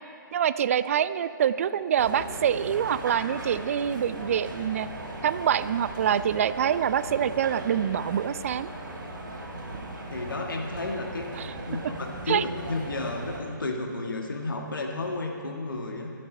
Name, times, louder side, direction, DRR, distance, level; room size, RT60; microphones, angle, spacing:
voice 1, 0.3-4.9 5.2-8.7 11.4-11.5 12.3-12.4, right 9 dB, 40° right, 15 dB, 0.4 m, -25 dB
sound 1, 2.0-13.4, right 1 dB, 65° right, 3.3 m, -38 dB
voice 2, 10.1-11.3 11.7-11.8 12.2-16.1, left 2 dB, 70° left, 1 dB, 1.6 m, -32 dB
22.5 x 8.4 x 4.5 m, 2.4 s
figure-of-eight pair, 135°, 11 cm